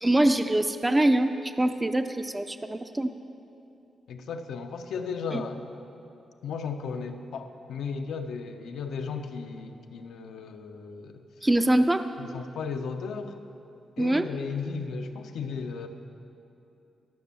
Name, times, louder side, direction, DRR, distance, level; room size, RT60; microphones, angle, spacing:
voice 1, 0.0-3.1 5.3-5.4 11.4-12.0 14.0-14.3, right 1 dB, 15° right, 9 dB, 0.4 m, -24 dB
voice 2, 4.1-5.7 6.4-11.2 12.2-13.4 14.0-15.9, left 5 dB, 85° left, 6 dB, 0.7 m, -35 dB
12.5 x 6.1 x 6.9 m, 2.8 s
cardioid pair, 105°, 0 cm